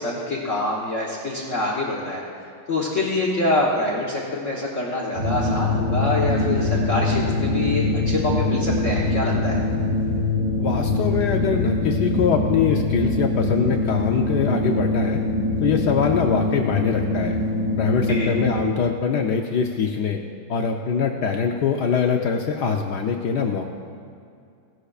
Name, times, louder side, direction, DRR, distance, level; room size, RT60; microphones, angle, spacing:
voice 1, 0.0-2.2 2.7-9.6 18.1-18.4, left 2 dB, 45° left, -4 dB, 1.2 m, -25 dB
sound 1, 5.1-18.7, left 2 dB, 30° right, 2.0 m, -23 dB
voice 2, 10.6-15.2 15.6-17.4 17.8-20.2 20.5-23.7, left 6 dB, 75° left, 3 dB, 0.9 m, -23 dB
17.0 x 11.5 x 2.4 m, 2.4 s
omnidirectional pair, 2.4 m